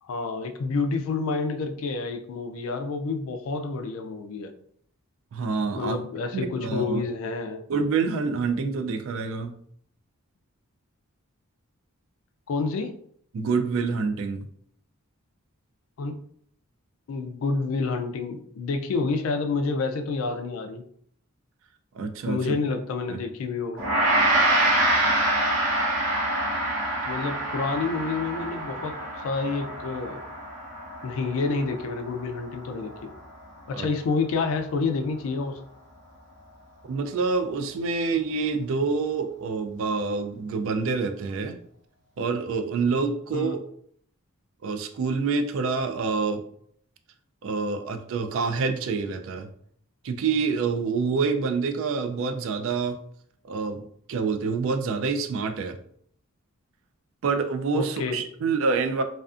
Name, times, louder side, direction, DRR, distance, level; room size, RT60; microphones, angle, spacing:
voice 1, 0.0-4.5 5.8-7.6 12.5-12.9 16.0-16.2 17.1-20.8 22.3-23.8 27.1-30.2 31.0-33.1 33.7-35.6 43.3-43.6 57.7-58.2, left 4 dB, 65° left, 6 dB, 0.3 m, -28 dB
voice 2, 5.3-6.0 6.3-7.0 7.7-9.5 13.3-14.5 22.0-22.4 23.1-23.2 33.7-33.9 36.9-41.6 42.2-43.6 44.6-46.4 47.4-49.5 50.0-53.0 53.5-53.8 54.1-55.8 57.2-59.0, right 4 dB, 60° right, 8 dB, 0.3 m, -27 dB
Gong, 23.8-33.2, right 1 dB, 90° right, 0.9 m, -26 dB
2.4 x 2.4 x 2.4 m, 0.65 s
head